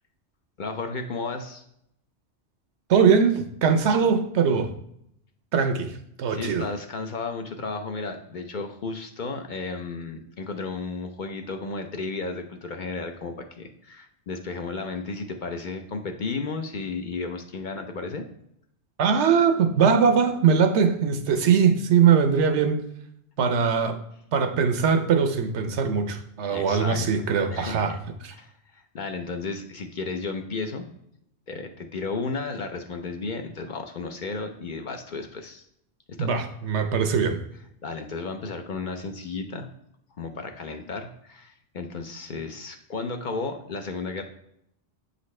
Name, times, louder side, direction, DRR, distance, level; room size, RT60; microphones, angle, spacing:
voice 1, 0.6-1.6 6.3-18.3 26.5-27.1 27.5-28.0 28.3-30.9 31.5-35.6 36.2-36.3 37.8-39.7 40.2-44.2, left 4 dB, 55° left, 5 dB, 0.7 m, -33 dB
voice 2, 2.9-4.7 5.5-6.7 19.0-22.8 23.4-24.0 24.3-28.0 28.2-28.3 36.2-37.4, right 6 dB, 85° right, 8 dB, 1.0 m, -21 dB
8.0 x 4.1 x 3.1 m, 0.74 s
omnidirectional pair, 1.1 m